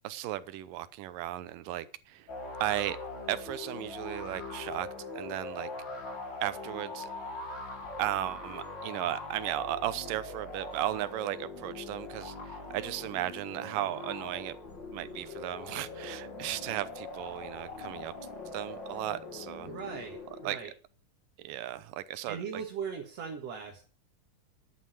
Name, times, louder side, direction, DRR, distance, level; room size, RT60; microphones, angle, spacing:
voice 1, 0.0-2.3 2.6-3.0 3.3-4.9 5.2-6.0 6.4-7.1 8.0-14.6 14.9-18.1 18.5-19.7 20.4-20.6 21.4-22.6, right 14 dB, 85° right, 14 dB, 2.5 m, -35 dB
sound 1, 2.3-20.7, left 2 dB, 40° left, 2.3 m, -42 dB
voice 2, 19.7-20.7 22.3-23.8, right 6 dB, 55° right, 1 dB, 2.6 m, -39 dB
11.5 x 8.5 x 7.0 m, 0.40 s
omnidirectional pair, 3.8 m